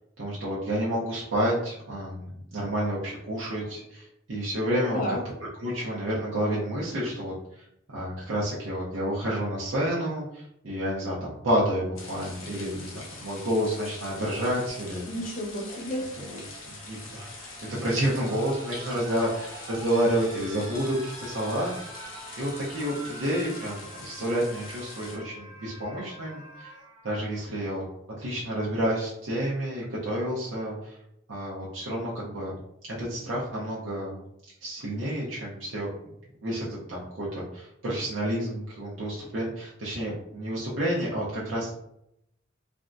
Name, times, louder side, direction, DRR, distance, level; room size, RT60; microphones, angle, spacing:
voice 1, 0.2-5.2 5.6-15.1 16.2-16.4 16.7-21.7 22.0-26.7 27.0-27.8 28.2-31.0 31.3-32.6 33.0-34.2 34.6-35.9 36.4-41.7, equal, 70° right, -6 dB, 0.6 m, -30 dB
sound 1, 12.0-25.2, left 3 dB, 85° left, 0.7 m, -44 dB
sound 2, 13.9-27.9 29.2-29.3, right 2 dB, 25° right, 0.8 m, -46 dB
voice 2, 15.1-16.0, equal, 45° left, -1 dB, 0.6 m, -31 dB
3.3 x 2.1 x 2.5 m, 0.80 s
head